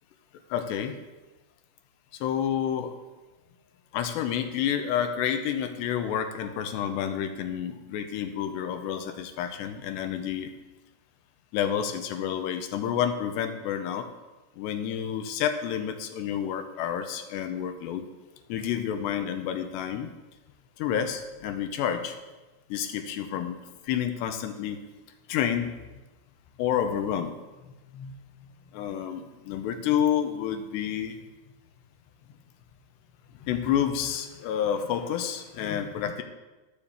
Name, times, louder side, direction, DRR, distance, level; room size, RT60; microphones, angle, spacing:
voice 1, 0.5-1.0 2.2-3.0 3.9-10.5 11.5-14.1 14.6-18.1 18.5-20.1 20.8-22.2 22.7-24.8 25.3-26.0 26.6-27.3 27.9-28.2 28.7-31.2 33.4-36.2, left 9 dB, 80° left, 7 dB, 2.8 m, -29 dB
12.5 x 6.9 x 7.1 m, 1.1 s
omnidirectional pair, 5.3 m